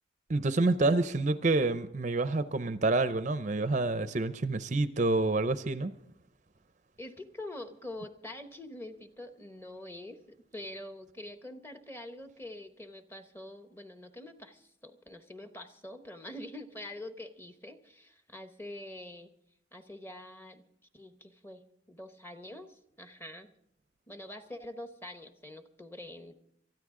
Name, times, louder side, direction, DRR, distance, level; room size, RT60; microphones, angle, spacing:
voice 1, 0.3-5.9, right 2 dB, 35° right, 12 dB, 0.5 m, -28 dB
voice 2, 7.0-10.2 10.5-19.3 19.7-23.5 24.1-26.3, left 1 dB, 10° left, 8 dB, 0.9 m, -45 dB
23.5 x 13.5 x 3.7 m, 0.73 s
head